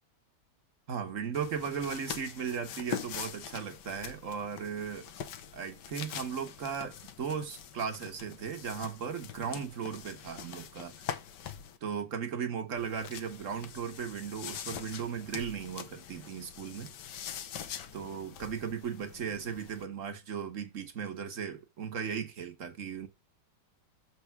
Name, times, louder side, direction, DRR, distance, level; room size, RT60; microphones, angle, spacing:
voice 1, 0.9-5.1 5.5-10.9 11.8-16.9 17.9-23.1, right 7 dB, 50° right, 1.3 m, -37 dB
sound 1, 1.3-11.8 12.8-19.8, left 8 dB, 70° left, 1.4 m, -44 dB
6.8 x 4.5 x 5.9 m
omnidirectional pair, 2.0 m